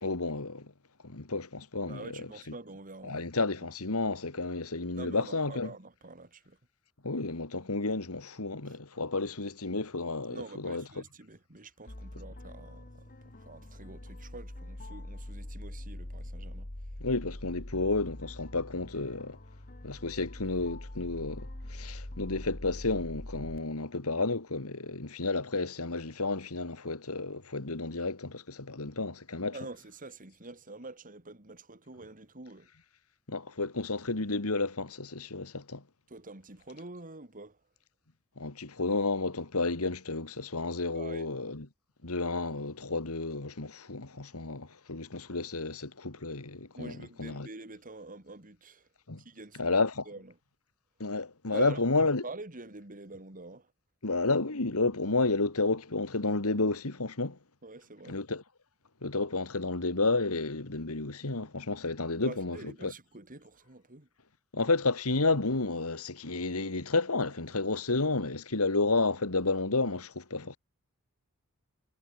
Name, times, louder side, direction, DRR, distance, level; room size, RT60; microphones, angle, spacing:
voice 1, 0.0-0.7 1.0-2.2 3.1-5.7 7.0-10.8 17.0-19.4 19.8-29.6 33.3-35.8 38.4-41.7 42.0-46.9 47.2-47.5 49.1-49.2 49.6-50.0 51.0-52.2 54.0-57.4 58.1-58.4 59.0-62.6 62.8-62.9 64.5-70.6, left 3 dB, 75° left, 2.1 m, -31 dB
voice 2, 1.9-3.5 5.0-6.6 8.7-8.8 10.3-16.7 29.5-32.7 36.1-37.6 40.9-41.3 46.7-48.9 49.2-49.8 50.1-50.4 51.5-53.7 57.6-58.2 62.2-64.1, right 2 dB, 40° right, 3.4 m, -46 dB
sound 1, 11.9-23.6, left 1 dB, 40° left, 1.9 m, -43 dB
head